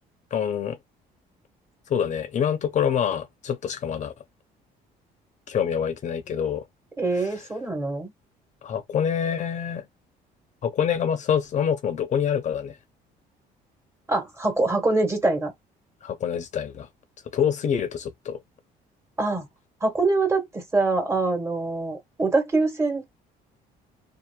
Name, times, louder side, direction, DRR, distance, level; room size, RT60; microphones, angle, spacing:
voice 1, 0.3-0.8 1.9-4.1 5.5-6.6 7.2-7.3 8.6-9.9 10.6-12.8 16.0-16.9 17.3-18.4, left 8 dB, 45° left, 0.7 m, -26 dB
voice 2, 7.0-8.1 14.1-15.5 19.2-19.5 19.8-23.0, right 3 dB, 15° right, 1.4 m, -24 dB
2.8 x 2.5 x 2.3 m
cardioid pair, 110°, 17 cm